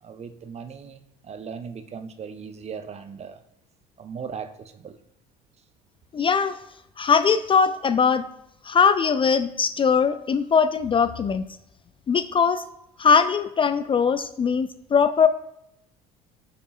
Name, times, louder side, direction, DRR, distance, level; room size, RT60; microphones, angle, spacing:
voice 1, 0.0-3.4 4.0-5.0, right 6 dB, 35° right, 9 dB, 0.7 m, -38 dB
voice 2, 6.1-6.6 7.0-8.3 8.6-11.4 12.1-12.6 13.0-15.3, left 6 dB, 25° left, 12 dB, 0.4 m, -20 dB
8.5 x 5.3 x 2.4 m, 0.80 s
hypercardioid pair, 60°, 20 cm